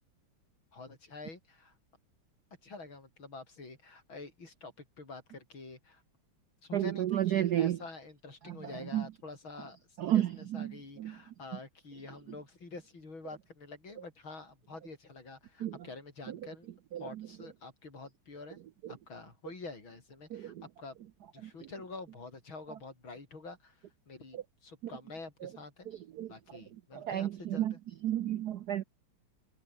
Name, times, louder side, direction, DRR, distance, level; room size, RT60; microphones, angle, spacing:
voice 1, 0.7-1.7 2.6-6.0 6.6-16.7 17.0-18.6 18.9-21.0 21.3-23.8 24.1-25.9 26.3-27.8, left 3 dB, 65° left, 5.9 m, -47 dB
voice 2, 6.7-7.8 8.9-9.0 10.0-10.3 10.6-10.7 11.0-11.1 15.6-15.8 16.9-17.0 20.3-20.5 21.4-21.5 26.2-26.3 27.0-27.7 28.0-28.8, right 12 dB, 65° right, 1.0 m, -30 dB
omnidirectional pair, 2.4 m